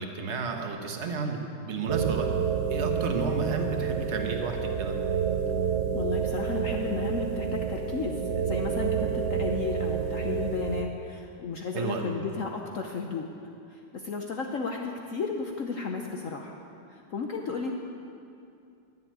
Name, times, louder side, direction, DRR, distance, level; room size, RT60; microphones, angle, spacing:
voice 1, 0.0-2.3 2.7-5.0 11.7-12.1, right 4 dB, 40° right, 3 dB, 1.0 m, -32 dB
sound 1, 1.9-10.8, right 7 dB, 90° right, 0.6 m, -29 dB
voice 2, 5.9-13.3 13.7-16.6 16.9-17.7, left 4 dB, 70° left, 2 dB, 0.7 m, -33 dB
12.5 x 7.4 x 9.2 m, 2.6 s
omnidirectional pair, 2.4 m